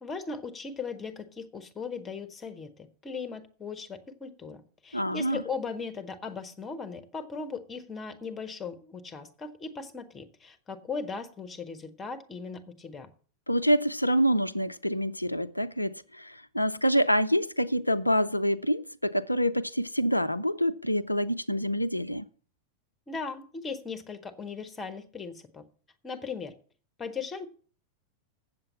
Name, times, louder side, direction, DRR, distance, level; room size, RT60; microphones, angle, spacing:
voice 1, 0.0-13.1 23.1-25.6 26.0-26.5 27.0-27.5, left 5 dB, 20° left, 1.2 m, -38 dB
voice 2, 4.9-5.4 13.5-22.3, equal, 85° left, 0.4 m, -26 dB
8.0 x 7.5 x 6.9 m
figure-of-eight pair, 90°, 0 cm